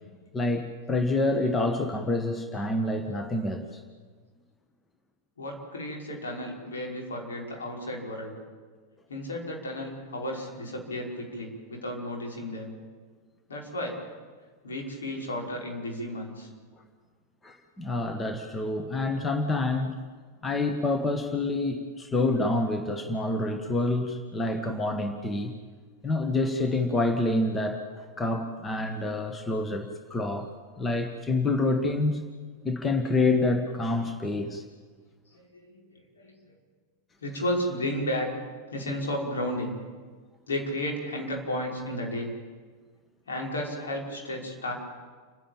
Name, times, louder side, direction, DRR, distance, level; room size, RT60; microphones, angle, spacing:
voice 1, 0.3-3.8 17.4-19.9 20.4-25.5 26.0-30.5 30.8-32.2 32.6-34.6, left 2 dB, 15° left, 6 dB, 1.6 m, -27 dB
voice 2, 5.4-8.3 9.1-12.7 13.5-14.0 14.6-16.5 28.2-28.3 35.3-36.5 37.2-38.3 38.7-39.8 40.5-42.3 43.3-44.7, left 1 dB, 70° left, 0 dB, 5.6 m, -33 dB
30.0 x 11.0 x 9.0 m, 1.5 s
figure-of-eight pair, 90°, 0 cm